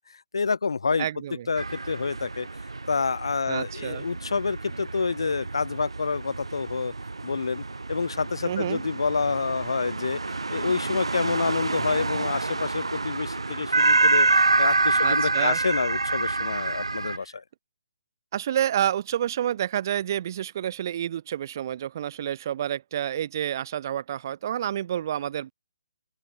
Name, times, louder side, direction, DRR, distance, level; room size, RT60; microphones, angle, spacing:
voice 1, 0.3-1.1 1.5-2.5 2.9-6.9 7.2-10.2 10.5-17.4, left 4 dB, 65° left, 7.3 m, -28 dB
voice 2, 1.0-1.5 3.5-4.0 8.4-8.8 15.0-15.6 18.3-25.5, right 10 dB, 40° right, 6.7 m, -29 dB
sound 1, 1.6-17.2, right 3 dB, 75° right, 2.3 m, -27 dB
open air
figure-of-eight pair, 135°, 3 cm